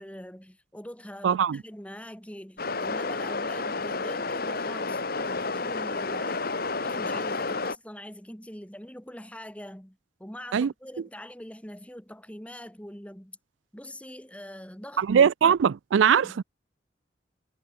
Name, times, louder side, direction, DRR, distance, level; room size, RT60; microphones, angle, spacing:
voice 1, 0.0-13.4 13.7-15.1 16.2-16.4, equal, 5° left, 2.9 m, -43 dB
voice 2, 1.2-1.6 10.5-10.7 15.0-16.4, right 7 dB, 80° right, 0.4 m, -21 dB
sound 1, 2.6-7.8, left 3 dB, 55° left, 1.8 m, -30 dB
head